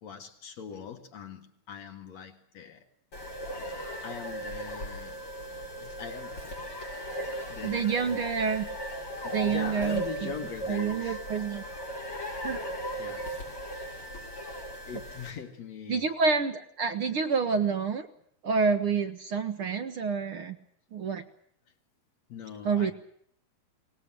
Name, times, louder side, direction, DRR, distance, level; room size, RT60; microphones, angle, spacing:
voice 1, 0.0-2.8 4.0-5.2 5.8-6.4 6.7-6.8 7.5-8.3 9.2-11.2 13.0-13.3 13.8-14.0 14.9-16.1 22.3-22.9, left 7 dB, 65° left, 5 dB, 3.1 m, -42 dB
sound 1, 3.1-15.3, right 1 dB, 45° left, 8.2 m, -37 dB
voice 2, 7.6-8.7 9.3-10.3 10.7-11.6 12.4-12.6 15.9-18.1 18.4-20.6 20.9-21.2 22.7-22.9, right 5 dB, 60° right, 7 dB, 1.6 m, -28 dB
23.5 x 19.5 x 7.7 m, 0.67 s
omnidirectional pair, 3.3 m